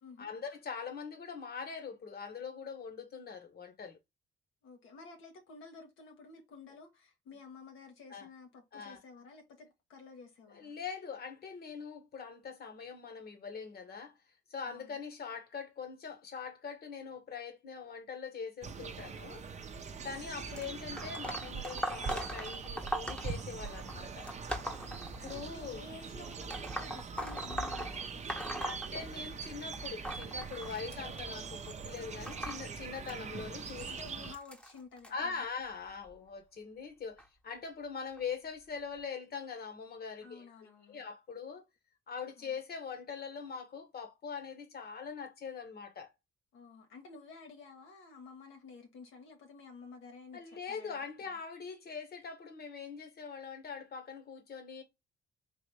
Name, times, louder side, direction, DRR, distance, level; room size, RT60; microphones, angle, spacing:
voice 1, 0.2-4.0 8.1-8.3 8.7-9.0 10.5-14.2 14.5-19.4 20.0-24.3 25.2-25.8 28.5-33.9 35.1-41.6 42.1-46.1 50.3-54.8, left 6 dB, 50° left, 1.2 m, -42 dB
voice 2, 4.6-10.7 14.6-15.0 19.9-20.2 24.9-28.6 33.9-35.5 40.2-41.0 42.4-42.6 46.5-51.0, left 4 dB, 85° left, 1.2 m, -52 dB
sound 1, 18.6-34.4, right 5 dB, 35° right, 0.6 m, -42 dB
sound 2, 20.6-25.7 26.4-29.5 29.7-35.1 35.9-36.1 37.2-37.3 38.2-38.3 39.0-39.1, equal, 5° left, 0.9 m, -41 dB
3.9 x 2.5 x 3.2 m
cardioid pair, 90°, 20 cm